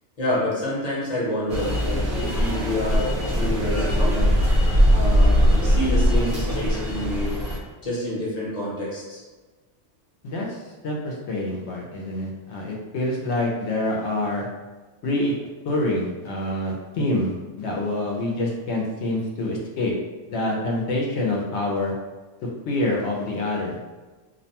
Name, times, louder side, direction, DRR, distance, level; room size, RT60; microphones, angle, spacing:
voice 1, 0.2-4.2 4.9-7.3 7.8-9.2, left 1 dB, 35° left, -7 dB, 0.9 m, -28 dB
sound 1, 1.5-7.6, equal, 55° right, 0.9 m, -20 dB
voice 2, 10.2-14.5 15.0-15.3 15.6-19.9 20.3-21.9 22.4-23.8, left 1 dB, 70° left, -2 dB, 0.8 m, -26 dB
2.6 x 2.1 x 2.8 m, 1.3 s
omnidirectional pair, 1.3 m